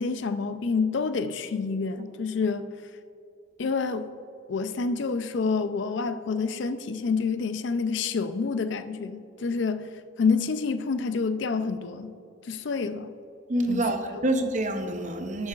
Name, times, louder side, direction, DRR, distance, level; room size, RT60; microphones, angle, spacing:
voice 1, 0.0-2.7 3.6-4.1 4.5-9.8 10.2-12.1 12.5-13.1 13.7-13.9 14.1-14.2, left 4 dB, 65° left, 0.4 m, -28 dB
voice 2, 13.5-15.5, right 1 dB, 40° right, 0.7 m, -27 dB
11.0 x 8.2 x 2.4 m
head